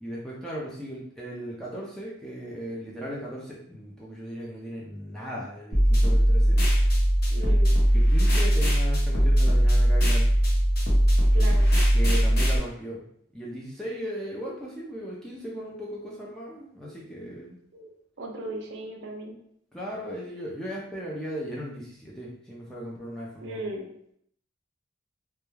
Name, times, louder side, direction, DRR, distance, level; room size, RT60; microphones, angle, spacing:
voice 1, 0.0-6.6 7.9-10.3 11.9-13.0 13.3-17.6 19.7-23.6, equal, 5° left, -5 dB, 0.4 m, -37 dB
sound 1, 5.7-12.6, equal, 50° left, 0.8 m, -20 dB
voice 2, 7.3-7.8 11.3-11.7 17.7-19.4 23.4-23.9, right 1 dB, 65° right, 2 dB, 0.5 m, -37 dB
2.2 x 2.2 x 3.1 m, 0.69 s
head